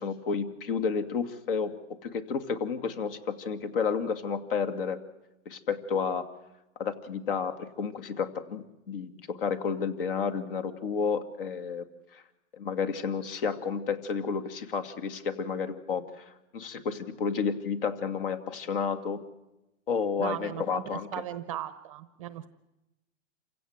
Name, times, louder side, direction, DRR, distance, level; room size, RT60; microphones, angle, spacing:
voice 1, 0.0-5.0 5.5-6.3 6.8-11.8 12.1-12.2 12.5-16.2 16.5-19.2 19.9-21.1, left 6 dB, 50° left, 11 dB, 2.3 m, -31 dB
voice 2, 20.2-22.5, right 11 dB, 25° right, 14 dB, 0.8 m, -37 dB
28.0 x 16.5 x 8.0 m, 0.95 s
hypercardioid pair, 165°, 37 cm